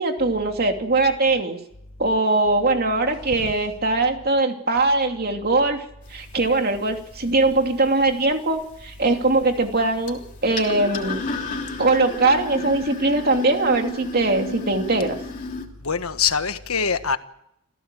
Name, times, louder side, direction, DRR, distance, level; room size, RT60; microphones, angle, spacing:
voice 1, 0.0-1.6 2.0-5.8 6.1-11.2 11.8-15.2, right 2 dB, 45° right, 2.9 m, -21 dB
sound 1, 6.0-15.7, left 2 dB, 35° left, 3.2 m, -34 dB
voice 2, 15.8-17.2, left 6 dB, 75° left, 1.4 m, -23 dB
27.5 x 16.0 x 7.7 m
head